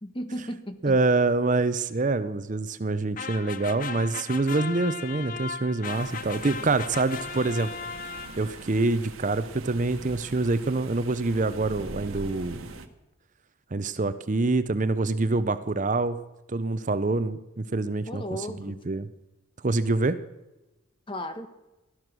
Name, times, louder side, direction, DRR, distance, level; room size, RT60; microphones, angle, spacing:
voice 1, 0.0-1.0 18.1-18.8 21.1-21.5, equal, 25° left, 9 dB, 1.3 m, -35 dB
voice 2, 0.8-7.7 8.4-12.7 13.7-16.2 16.5-18.2 18.5-19.1 19.6-20.2, right 3 dB, 35° right, 13 dB, 0.6 m, -26 dB
sound 1, 3.2-8.7, left 5 dB, 40° left, 0.6 m, -37 dB
sound 2, 5.9-12.9, right 3 dB, 85° right, 1.4 m, -43 dB
17.5 x 12.5 x 6.2 m, 0.99 s
head